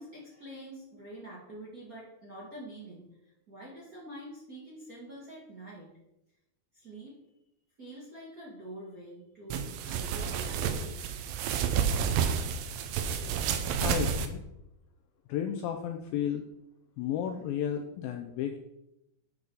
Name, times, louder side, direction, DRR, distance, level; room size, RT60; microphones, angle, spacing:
voice 1, 0.0-6.0 6.7-7.2 7.8-11.1, right 1 dB, 35° right, -6 dB, 1.6 m, -46 dB
sound 1, 9.5-14.3, right 7 dB, 75° right, 2.2 m, -30 dB
voice 2, 13.8-14.4 15.3-16.4 17.0-18.6, left 9 dB, 85° left, 5 dB, 2.1 m, -33 dB
10.0 x 4.8 x 4.8 m, 0.85 s
omnidirectional pair, 4.7 m